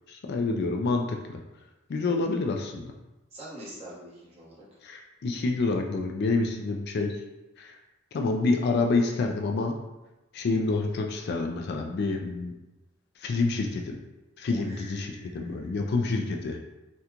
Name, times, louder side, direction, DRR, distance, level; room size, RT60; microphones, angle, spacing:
voice 1, 0.1-1.4 1.9-2.9 4.8-7.2 7.6-7.8 8.1-9.8 10.3-12.5 13.2-14.0 14.4-16.6, left 3 dB, 55° left, 3 dB, 0.3 m, -28 dB
voice 2, 3.3-4.5 14.5-15.9, equal, 30° right, -8 dB, 1.2 m, -44 dB
3.6 x 2.2 x 2.8 m, 1.0 s
head